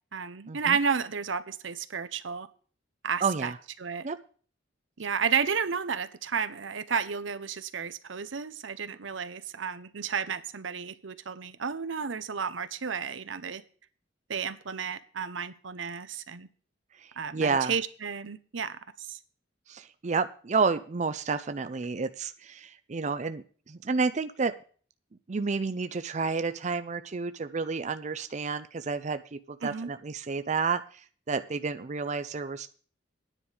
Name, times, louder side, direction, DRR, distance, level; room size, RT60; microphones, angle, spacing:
voice 1, 0.1-2.5 3.0-3.5 3.8-4.1 5.0-13.6 14.3-16.5 17.2-19.2 29.6-29.9, right 6 dB, 80° right, 13 dB, 0.8 m, -32 dB
voice 2, 3.2-3.6 4.0-4.2 17.0-17.7 19.7-24.5 25.3-32.7, right 4 dB, 40° right, 11 dB, 0.5 m, -30 dB
11.0 x 9.9 x 5.0 m, 0.43 s
head